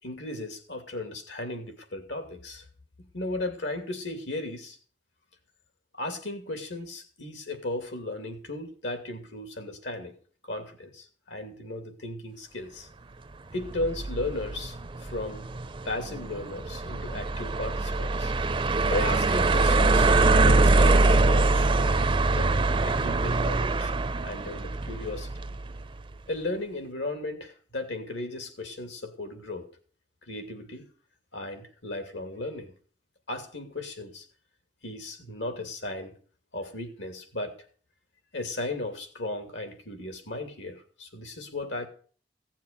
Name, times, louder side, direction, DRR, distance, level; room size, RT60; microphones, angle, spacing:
voice 1, 0.0-2.6 3.1-4.8 6.0-10.2 10.4-12.9 13.5-15.4 15.8-18.3 18.9-21.7 22.3-22.5 22.8-23.9 24.2-25.3 26.3-29.7 30.3-30.8 31.3-32.7 33.3-34.2 34.8-36.2 36.5-37.6 38.3-41.9, left 2 dB, 85° left, 7 dB, 2.9 m, -35 dB
sound 1, 13.6-25.8, right 3 dB, 30° right, 0.5 m, -23 dB
16.5 x 7.5 x 7.0 m, 0.43 s
head